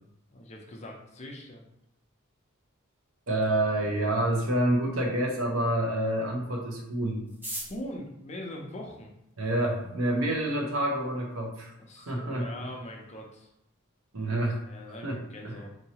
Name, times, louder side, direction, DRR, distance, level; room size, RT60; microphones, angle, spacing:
voice 1, 0.3-1.6 7.7-9.1 11.8-13.5 14.6-15.7, left 1 dB, 30° left, 0 dB, 0.6 m, -42 dB
voice 2, 3.3-7.2 9.4-12.4 14.1-14.6 15.0-15.6, right 1 dB, 70° right, 0 dB, 0.9 m, -28 dB
sound 1, 7.2-9.5 10.3-10.4 10.6-10.7 11.0-11.5 11.8-11.9 12.1-12.5 12.8-13.0 13.3-13.6, right 1 dB, 10° right, 0.8 m, -42 dB
4.6 x 2.9 x 2.9 m, 0.78 s
head